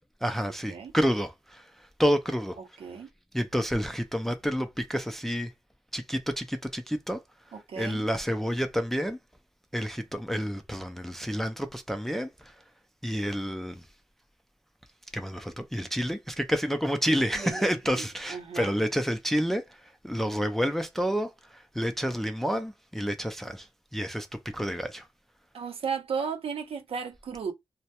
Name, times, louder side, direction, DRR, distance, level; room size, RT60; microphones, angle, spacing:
voice 1, 0.2-2.6 3.3-5.5 5.9-7.2 7.8-9.2 9.7-12.6 13.0-13.8 15.1-25.1, equal, 5° left, 0.3 m, -29 dB
voice 2, 7.5-8.1 17.3-18.0 18.3-18.8 25.5-27.5, right 6 dB, 80° right, 0.6 m, -35 dB
2.2 x 2.0 x 2.8 m
wide cardioid pair, 115°, 10 cm